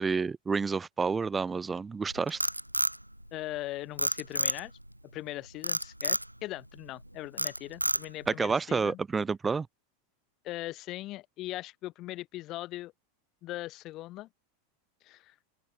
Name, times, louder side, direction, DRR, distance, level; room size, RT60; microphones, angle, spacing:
voice 1, 0.0-2.4 8.3-9.7, right 5 dB, 15° right, 1.9 m, -29 dB
Frog, 2.1-3.6 4.0-4.9 5.6-6.3 6.8-7.0 7.4-8.3, right 1 dB, 90° right, 0.4 m, -29 dB
voice 2, 3.3-4.7 5.1-9.0 10.4-12.9 13.4-14.3 15.0-15.3, left 17 dB, 35° left, 3.7 m, -40 dB
open air
figure-of-eight pair, 90°, 0 cm